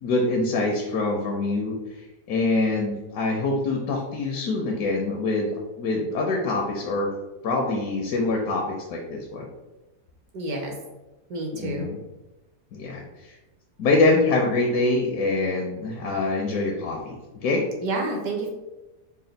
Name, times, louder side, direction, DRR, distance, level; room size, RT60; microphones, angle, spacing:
voice 1, 0.0-7.1 7.4-9.5 11.6-12.0 12.7-13.4 13.8-17.6, left 2 dB, 75° left, 0 dB, 1.1 m, -25 dB
voice 2, 10.3-10.7 11.3-11.9 17.8-18.5, right 2 dB, 70° right, 2 dB, 1.2 m, -29 dB
4.2 x 2.2 x 3.9 m, 1.1 s
omnidirectional pair, 1.7 m